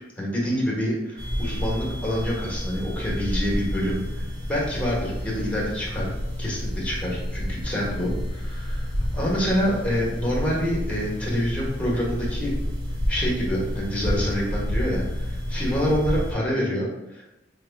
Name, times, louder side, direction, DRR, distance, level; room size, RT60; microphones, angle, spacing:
voice 1, 0.2-4.2 4.5-6.1 6.4-12.5 13.1-17.3, equal, 5° left, -5 dB, 1.1 m, -27 dB
sound 1, 1.2-16.3, equal, 80° right, 0.8 m, -29 dB
4.6 x 2.2 x 3.3 m, 0.94 s
head